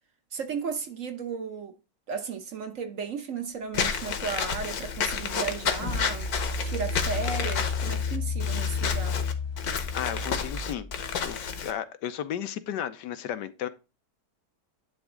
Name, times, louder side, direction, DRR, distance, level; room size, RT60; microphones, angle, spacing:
voice 1, 0.3-1.7 2.1-6.3 6.6-9.2, right 5 dB, 55° right, 1.1 m, -34 dB
Walk footsteps / Squeak, 3.7-11.7, left 6 dB, 60° left, 1.5 m, -31 dB
Engine, 5.1-11.0, left 4 dB, 25° left, 0.6 m, -32 dB
voice 2, 9.9-10.9 11.1-13.7, left 10 dB, 75° left, 1.4 m, -34 dB
10.5 x 3.6 x 4.9 m
omnidirectional pair, 1.9 m